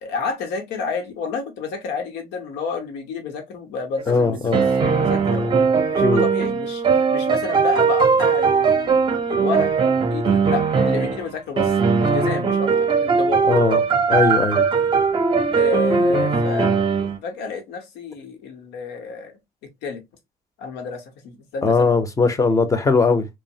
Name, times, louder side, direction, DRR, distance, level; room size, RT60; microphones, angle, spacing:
voice 1, 0.0-6.8 7.1-9.0 9.3-9.7 10.1-11.7 12.0-13.4 15.6-16.8 17.2-19.3 19.8-20.0 20.6-22.0, left 4 dB, 85° left, 0.9 m, -30 dB
sound 1, 4.0-11.3 11.6-17.2, right 5 dB, 30° right, 0.6 m, -19 dB
voice 2, 4.1-4.6 6.0-6.2 13.4-13.8 14.1-14.7 21.6-23.3, left 4 dB, 20° left, 0.6 m, -19 dB
3.0 x 2.0 x 2.7 m
cardioid pair, 110°, 17 cm